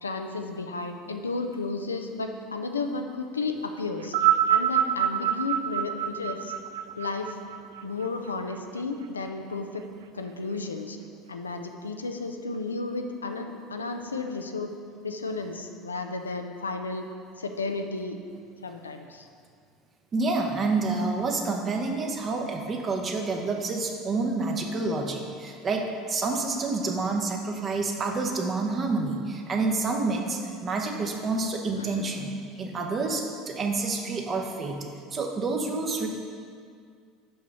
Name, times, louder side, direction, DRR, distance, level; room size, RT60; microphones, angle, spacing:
voice 1, 0.0-4.1 4.5-6.5 7.0-7.4 7.8-9.9 10.1-11.0 11.3-14.7 15.0-17.1 17.4-18.2 18.6-19.3 31.8-32.2, left 3 dB, 85° left, 5 dB, 0.5 m, -33 dB
sound 1, 4.0-8.5 9.4-9.5, right 10 dB, 70° right, 0.3 m, -26 dB
voice 2, 20.1-34.8 35.1-36.1, right 3 dB, 35° right, 2 dB, 1.0 m, -28 dB
6.1 x 5.4 x 5.5 m, 2.2 s
figure-of-eight pair, 70°, 0 cm